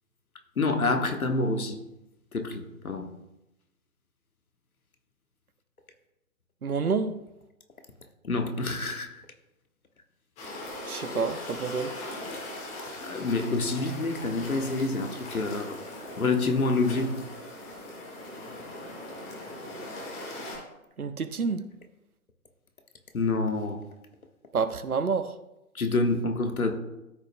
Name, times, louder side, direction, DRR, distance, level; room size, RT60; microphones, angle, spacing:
voice 1, 0.6-1.8 2.3-3.1 8.2-9.2 13.0-15.8 16.2-17.2 23.1-23.8 25.7-26.8, left 3 dB, 75° left, 1.3 m, -27 dB
voice 2, 6.6-7.2 10.9-11.9 21.0-21.7 24.5-25.3, right 5 dB, 85° right, 0.7 m, -28 dB
sound 1, 10.4-20.6, left 1 dB, 15° left, 1.6 m, -40 dB
13.0 x 6.5 x 2.2 m
figure-of-eight pair, 130°, 43 cm